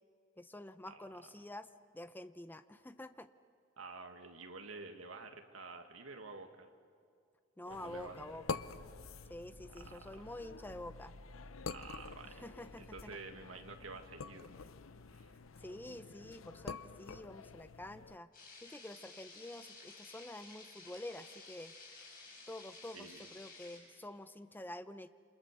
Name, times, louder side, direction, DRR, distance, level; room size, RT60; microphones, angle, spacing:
voice 1, 0.4-1.7 1.9-3.3 7.6-8.6 9.3-11.1 12.2-13.2 15.6-18.3 18.6-21.7 22.5-25.1, left 1 dB, 10° left, 11 dB, 0.7 m, -48 dB
voice 2, 3.8-6.7 7.7-8.4 9.9-10.1 11.7-12.5 12.8-14.5 15.1-15.4 22.9-23.3, right 3 dB, 80° right, 4 dB, 1.9 m, -50 dB
sound 1, 7.7-18.2, left 5 dB, 75° left, 0.7 m, -48 dB
sound 2, 8.5-15.0, equal, 65° right, 1.8 m, -58 dB
sound 3, 18.3-23.8, left 3 dB, 45° left, 7.3 m, -54 dB
28.5 x 26.5 x 6.7 m, 2.2 s
head